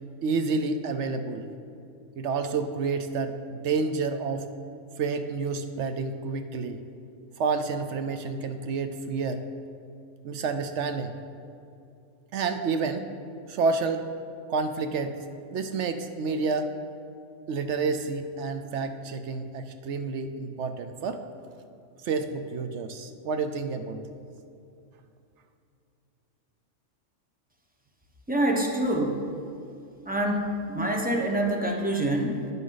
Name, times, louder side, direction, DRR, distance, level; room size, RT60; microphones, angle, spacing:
voice 1, 0.2-1.5 2.2-4.5 5.0-6.8 7.4-9.4 10.2-11.1 12.3-13.1 13.5-14.1 14.5-15.2 15.5-16.8 17.5-21.2 22.0-24.0, right 4 dB, 65° right, 8 dB, 0.9 m, -29 dB
voice 2, 28.3-29.3 30.0-32.5, right 1 dB, 10° right, 1 dB, 0.9 m, -26 dB
11.0 x 9.3 x 3.9 m, 2.5 s
omnidirectional pair, 1.3 m